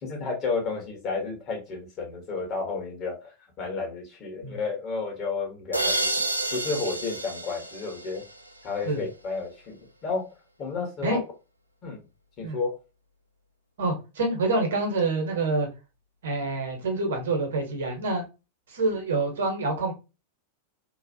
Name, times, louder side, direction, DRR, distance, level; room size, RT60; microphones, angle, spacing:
voice 1, 0.0-3.2 3.6-6.0 6.5-8.2 8.6-9.7 10.0-10.3 10.6-11.2 11.8-12.0 12.4-12.7, left 4 dB, 35° left, 1.3 m, -31 dB
sound 1, 5.7-8.6, right 1 dB, 90° right, 0.4 m, -29 dB
voice 2, 13.8-15.7 16.2-18.2 18.7-19.9, right 3 dB, 60° right, 1.0 m, -27 dB
3.0 x 2.5 x 2.6 m
figure-of-eight pair, 90°, 0 cm